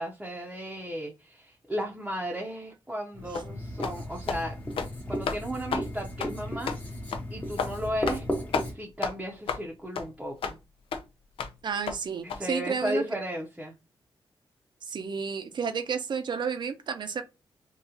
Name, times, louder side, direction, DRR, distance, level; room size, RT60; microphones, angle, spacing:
voice 1, 0.0-4.6 5.1-7.0 7.3-8.2 8.6-10.6 12.2-13.8, equal, 10° right, 0.8 m, -35 dB
Writing, 3.1-8.7, equal, 15° left, 0.9 m, -35 dB
sound 1, 3.3-3.5 3.8-4.0 4.3-4.4 4.7-4.9 5.3-5.4 5.7-5.9 6.2-6.3 6.7-6.8 7.1-7.3 7.6-7.7 8.1-8.2 8.5-8.7 9.0-9.1 9.5-9.6 10.0-10.1 10.4-10.6 10.9-11.0 11.4-11.5 11.9-12.0 12.3-12.4, left 6 dB, 80° left, 0.5 m, -31 dB
voice 2, 11.6-13.0 14.9-17.2, right 6 dB, 55° right, 0.6 m, -31 dB
3.7 x 2.4 x 2.8 m
cardioid pair, 100°, 9 cm